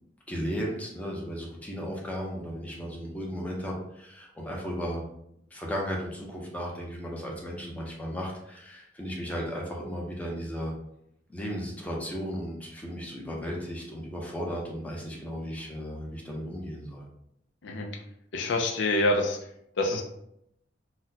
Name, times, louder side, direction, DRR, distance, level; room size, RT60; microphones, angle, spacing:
voice 1, 0.3-5.0 5.5-10.7 11.3-17.1, equal, 10° left, -2 dB, 0.6 m, -35 dB
voice 2, 18.3-19.4 19.8-20.0, left 2 dB, 70° left, 2 dB, 0.4 m, -26 dB
4.0 x 2.2 x 2.7 m, 0.77 s
head